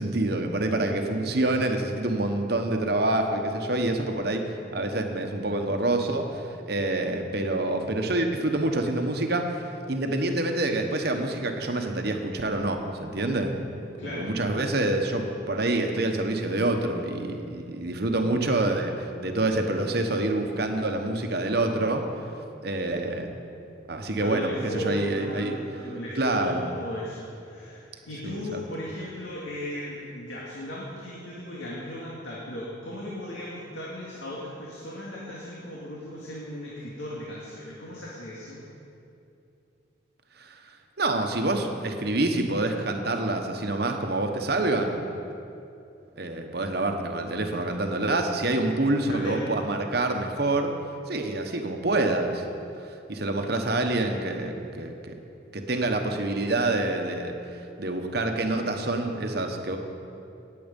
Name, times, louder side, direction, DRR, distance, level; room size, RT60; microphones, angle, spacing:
voice 1, 0.0-13.5 14.0-22.0 22.6-23.3 23.9-25.6 26.1-26.7 28.2-28.6 40.4-40.6 41.0-45.0 46.2-50.7 51.1-52.4 52.8-55.2 55.5-59.8, right 2 dB, 55° right, 4 dB, 1.1 m, -27 dB
voice 2, 0.8-1.3 14.0-14.3 24.2-38.7 49.0-49.5, left 1 dB, 80° left, -5 dB, 2.1 m, -37 dB
18.5 x 7.8 x 5.3 m, 2.7 s
head